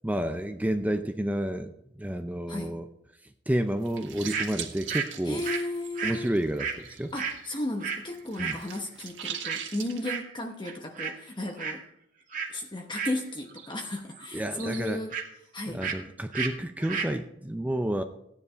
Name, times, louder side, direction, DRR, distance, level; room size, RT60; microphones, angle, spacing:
voice 1, 0.0-2.9 3.5-5.4 6.0-7.1 8.4-8.6 14.3-15.0 15.7-18.0, right 1 dB, 10° right, 7 dB, 0.6 m, -30 dB
sound 1, 3.7-7.4 7.7-10.0, right 8 dB, 85° right, 1.8 m, -40 dB
sound 2, 4.3-4.5 4.9-8.1 8.4-8.6 9.4-9.7 10.0-10.4 10.6-11.2 11.4-11.8 12.3-12.5 12.9-13.7 14.0-15.3 15.8-16.0 16.3-16.5 16.8-17.1, right 6 dB, 45° right, 1.8 m, -34 dB
voice 2, 5.3-6.3 7.1-11.8 12.5-15.2 15.5-15.8, left 1 dB, 25° left, 2 dB, 1.0 m, -34 dB
15.0 x 9.8 x 4.5 m, 0.79 s
head